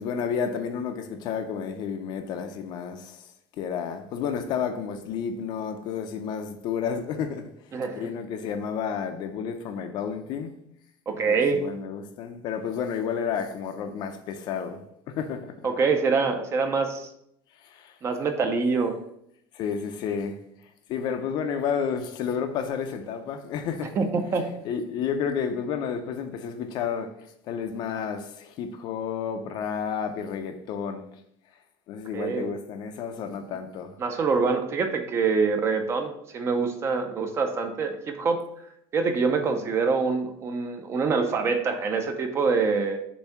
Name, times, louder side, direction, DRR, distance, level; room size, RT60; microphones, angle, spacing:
voice 1, 0.0-3.3 3.6-7.5 8.0-10.5 11.1-15.7 17.6-18.0 19.5-20.4 20.9-24.0 24.6-27.1 27.5-31.1 31.9-33.9 39.5-39.6, left 7 dB, 40° left, 0.5 m, -31 dB
voice 2, 7.7-8.0 11.1-11.6 15.6-17.1 18.0-18.9 24.0-24.5 32.1-32.5 34.0-38.4 38.9-43.0, right 4 dB, 25° right, 0.5 m, -25 dB
6.9 x 2.7 x 5.5 m
cardioid pair, 175°, 11 cm